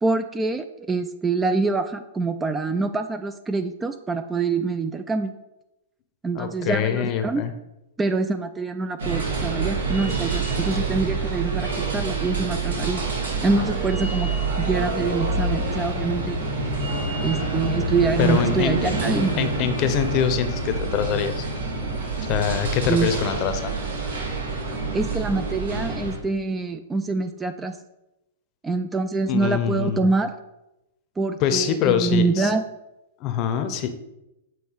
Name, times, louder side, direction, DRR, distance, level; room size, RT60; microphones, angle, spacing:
voice 1, 0.0-5.3 6.2-7.4 8.0-13.0 13.4-16.4 17.2-19.4 22.9-23.1 24.7-27.8 28.6-30.3 31.2-32.6, right 3 dB, 15° right, 9 dB, 0.3 m, -25 dB
voice 2, 6.3-7.5 18.2-18.9 19.4-21.5 22.2-23.7 29.3-30.1 31.4-32.5 33.2-33.9, left 9 dB, 40° left, 9 dB, 0.7 m, -24 dB
sound 1, 9.0-26.2, right 3 dB, 90° right, 1.9 m, -26 dB
7.3 x 3.1 x 4.6 m, 0.92 s
hypercardioid pair, 130°, 0 cm